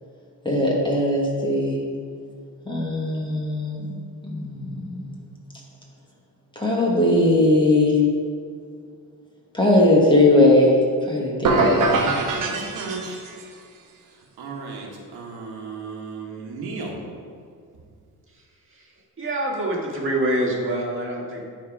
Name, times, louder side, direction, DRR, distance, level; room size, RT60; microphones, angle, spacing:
voice 1, 0.4-1.8 2.6-4.0 4.2-5.2 6.5-8.0 9.5-10.8 11.1-11.9, left 1 dB, 10° left, -3 dB, 1.5 m, -19 dB
sound 1, 11.4-13.5, right 3 dB, 55° right, 1.1 m, -23 dB
voice 2, 11.7-13.2 14.4-17.0, right 4 dB, 85° right, -1 dB, 1.6 m, -34 dB
voice 3, 19.2-21.4, right 1 dB, 35° right, -2 dB, 1.8 m, -25 dB
11.0 x 4.2 x 4.8 m, 2.2 s
cardioid pair, 135°, 38 cm